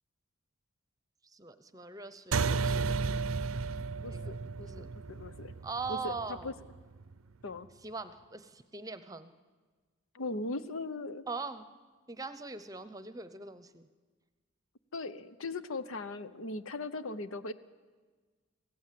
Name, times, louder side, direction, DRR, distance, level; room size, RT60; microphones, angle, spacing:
voice 1, 1.2-3.0 4.1-4.4 4.6-4.9 5.6-6.5 7.8-9.3 11.3-11.7 12.1-13.9, right 4 dB, 15° right, 11 dB, 0.8 m, -41 dB
sound 1, 2.3-7.1, right 4 dB, 90° right, 0.6 m, -33 dB
voice 2, 4.0-5.5 5.9-6.1 6.4-6.5 7.4-7.7 10.1-11.2 14.9-17.5, left 2 dB, 80° left, 13 dB, 0.9 m, -39 dB
26.5 x 16.5 x 7.6 m, 1.4 s
head